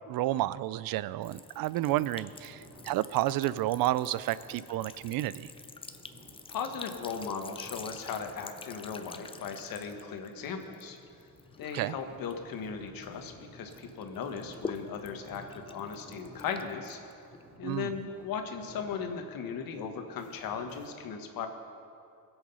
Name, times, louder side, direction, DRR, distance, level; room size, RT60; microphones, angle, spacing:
voice 1, 0.1-5.5 11.7-11.9 17.6-17.9, right 15 dB, 80° right, 18 dB, 0.5 m, -30 dB
Sink (filling or washing) / Trickle dribble, 1.2-13.3 13.7-17.6, left 4 dB, 15° left, 0.5 m, -48 dB
sound 1, 1.8-20.9, equal, 5° right, 3.5 m, -55 dB
voice 2, 6.5-11.0 11.6-17.0 17.6-21.5, left 6 dB, 75° left, 5 dB, 1.5 m, -37 dB
21.0 x 7.9 x 5.5 m, 2.5 s
cardioid pair, 140°, 35 cm